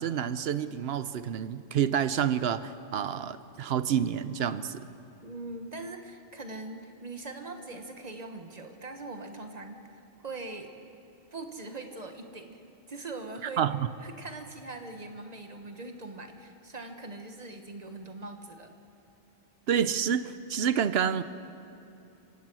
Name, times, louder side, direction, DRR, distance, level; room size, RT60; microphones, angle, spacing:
voice 1, 0.0-4.9 13.6-13.9 19.7-21.2, right 8 dB, 70° right, 14 dB, 0.9 m, -28 dB
voice 2, 5.2-10.7 11.3-12.6 12.9-13.6 14.0-18.7, right 2 dB, 40° right, 6 dB, 1.5 m, -42 dB
24.5 x 17.0 x 6.3 m, 2.9 s
omnidirectional pair, 1.1 m